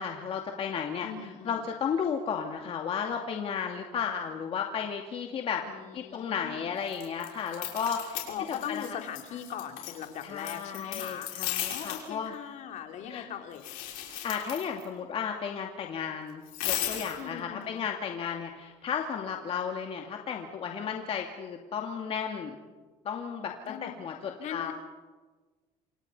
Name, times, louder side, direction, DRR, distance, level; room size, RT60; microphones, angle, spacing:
voice 1, 0.0-5.6 5.9-8.2 8.7-8.8 10.2-12.3 13.1-13.3 14.0-22.5 23.0-24.7, left 7 dB, 45° left, 2 dB, 2.5 m, -34 dB
voice 2, 1.0-1.7 5.6-6.7 8.3-11.4 11.7-13.7 17.2-17.9 23.6-24.0 24.4-24.7, left 9 dB, 60° left, 4 dB, 3.5 m, -40 dB
sound 1, 6.9-8.9 9.1-12.1 13.5-14.8 16.5-17.2, left 13 dB, 90° left, 6.2 m, -36 dB
28.0 x 27.5 x 5.6 m, 1.3 s
cardioid pair, 135°, 14 cm